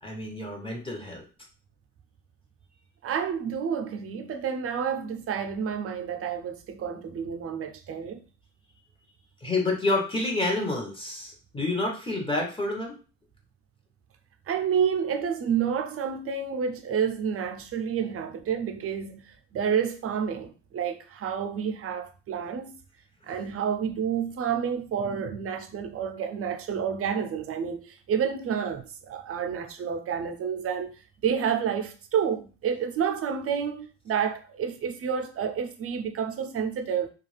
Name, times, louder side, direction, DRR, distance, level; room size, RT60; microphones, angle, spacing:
voice 1, 0.0-1.2 9.4-13.0, left 2 dB, 15° left, 0.9 m, -29 dB
voice 2, 3.0-8.2 14.5-22.8 23.3-31.0 31.2-37.1, right 7 dB, 50° right, 0.5 m, -29 dB
2.4 x 2.3 x 3.2 m
cardioid pair, 90°, 30 cm